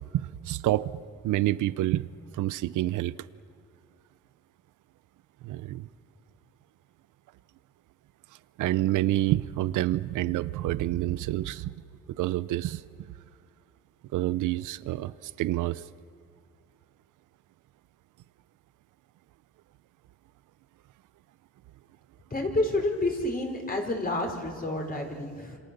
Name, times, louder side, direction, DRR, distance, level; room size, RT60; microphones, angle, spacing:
voice 1, 0.1-0.9 1.2-2.1 2.4-3.2 5.4-5.9 8.6-11.7 12.2-12.8 14.1-15.1 15.4-15.8, right 15 dB, 85° right, 17 dB, 0.8 m, -27 dB
voice 2, 22.3-25.6, left 2 dB, 30° left, 2 dB, 4.4 m, -29 dB
27.5 x 25.5 x 6.9 m, 2.2 s
cardioid pair, 90°, 30 cm